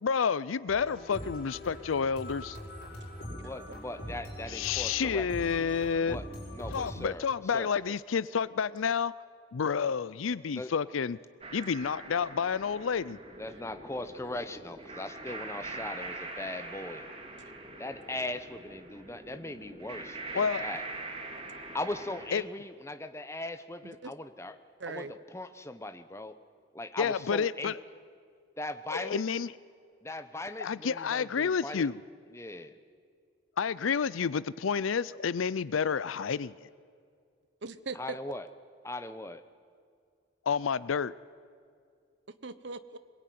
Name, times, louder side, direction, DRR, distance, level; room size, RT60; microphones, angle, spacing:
voice 1, 0.0-2.6 4.5-6.2 6.7-9.1 9.5-11.2 11.5-13.2 20.3-20.6 22.3-22.4 27.0-27.8 28.9-29.5 30.6-32.0 33.6-36.7 40.5-41.1, left 6 dB, 90° left, 19 dB, 0.5 m, -30 dB
sound 1, 0.7-6.9, equal, 50° left, 7.0 m, -42 dB
voice 2, 3.3-5.3 6.0-6.2 6.5-7.2 7.5-8.0 10.5-10.7 13.4-17.1 17.8-20.8 21.7-24.5 24.9-25.1 25.3-26.4 26.7-27.7 28.6-29.2 30.0-31.9 32.3-32.7 38.0-38.4 38.8-39.4, left 2 dB, 15° left, 10 dB, 0.9 m, -39 dB
sound 2, 11.4-22.3, right 2 dB, 30° right, 2.6 m, -43 dB
voice 3, 24.8-25.1 37.6-38.2 42.4-43.0, right 4 dB, 65° right, 13 dB, 1.0 m, -40 dB
22.0 x 21.5 x 9.3 m, 2.3 s
head